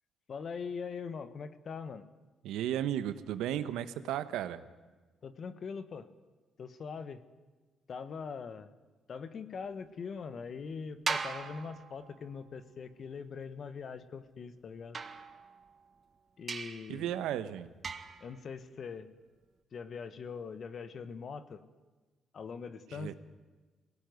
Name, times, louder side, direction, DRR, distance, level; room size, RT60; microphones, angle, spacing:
voice 1, 0.3-2.0 5.2-6.1 6.6-7.2 7.9-8.7 9.1-15.0 16.4-17.3 18.2-19.1 19.7-21.6 22.3-23.2, left 5 dB, 50° left, 13 dB, 1.4 m, -42 dB
voice 2, 2.4-4.6 16.9-17.7 22.9-23.1, right 11 dB, 90° right, 12 dB, 1.1 m, -34 dB
sound 1, 11.1-12.4 14.9-15.8 16.5-17.0 17.8-18.3, right 5 dB, 40° right, 1.6 m, -39 dB
21.5 x 17.5 x 9.5 m, 1.3 s
cardioid pair, 90°, 0 cm